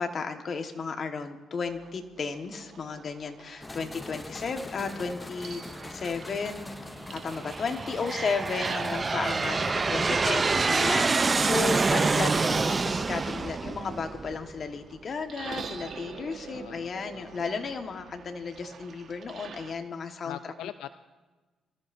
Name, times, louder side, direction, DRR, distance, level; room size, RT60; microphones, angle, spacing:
voice 1, 0.0-5.6 5.9-6.8 7.1-20.4, left 5 dB, 50° left, 6 dB, 1.4 m, -34 dB
sound 1, 1.6-19.7, right 6 dB, 60° right, 1.3 m, -47 dB
sound 2, 3.6-10.7, left 2 dB, 15° left, 0.6 m, -43 dB
Aircraft, 5.8-6.3 7.0-14.6, right 4 dB, 30° right, 0.5 m, -27 dB
voice 2, 9.5-10.7 16.5-17.4 20.2-20.9, left 11 dB, 85° left, 11 dB, 0.3 m, -44 dB
24.5 x 14.0 x 2.6 m, 1.2 s
cardioid pair, 90°, 0 cm